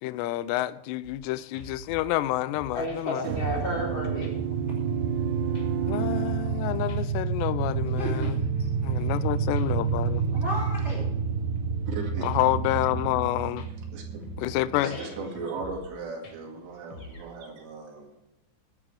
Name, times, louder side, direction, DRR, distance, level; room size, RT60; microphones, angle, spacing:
voice 1, 0.0-3.3 5.9-8.3 8.8-10.2 12.2-13.7 14.4-15.0, left 15 dB, 80° left, 2.6 m, -28 dB
sound 1, 1.0-1.2 1.5-3.9 4.2-4.3 4.7-5.3 5.5-6.6 6.9-7.0 7.3-7.9 8.2-9.3 9.6-11.2 11.6-11.9 12.2-12.3 12.7-13.3 13.6-13.9 14.2-14.6 14.9-15.0 15.4-15.9 16.2-17.3, left 1 dB, 60° left, 1.4 m, -46 dB
voice 2, 2.7-4.3 14.8-15.1, left 1 dB, 30° left, 3.5 m, -32 dB
sound 2, 3.2-15.5, right 6 dB, 90° right, 2.0 m, -29 dB
voice 3, 7.9-9.3 10.3-11.1, left 1 dB, 20° right, 2.1 m, -37 dB
voice 4, 11.9-12.3 13.9-14.2 14.8-18.1, right 3 dB, 70° right, 4.3 m, -37 dB
22.5 x 9.8 x 3.4 m
omnidirectional pair, 5.3 m